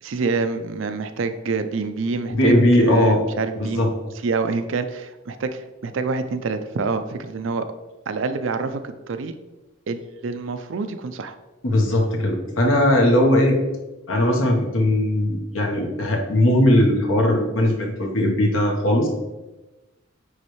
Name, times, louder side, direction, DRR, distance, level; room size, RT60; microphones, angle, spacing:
voice 1, 0.0-3.9 4.2-7.7 8.1-9.3 9.9-11.3, right 4 dB, 70° right, 9 dB, 0.5 m, -27 dB
voice 2, 2.3-3.2 3.5-3.9 11.6-13.6 14.1-19.1, left 1 dB, 85° left, 1 dB, 1.1 m, -19 dB
9.4 x 3.2 x 3.1 m, 1.1 s
head